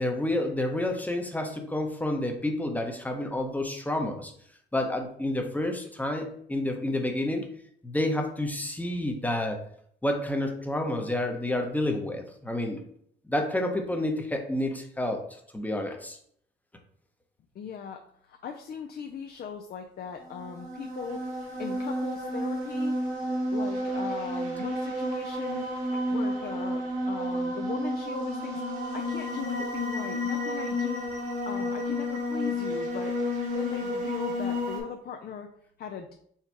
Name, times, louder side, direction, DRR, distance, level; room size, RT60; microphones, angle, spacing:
voice 1, 0.0-4.3 4.7-7.5 7.8-9.6 10.0-12.8 13.3-15.2 15.5-16.2, left 1 dB, 10° left, 3 dB, 0.8 m, -29 dB
voice 2, 17.5-21.2 21.6-23.0 23.5-25.7 26.1-31.1 31.5-33.1 33.5-35.5 35.8-36.1, left 7 dB, 50° left, 4 dB, 0.5 m, -39 dB
sound 1, 20.2-34.8, left 1 dB, 85° right, 1.8 m, -31 dB
4.3 x 2.3 x 4.5 m, 0.65 s
cardioid pair, 90°, 20 cm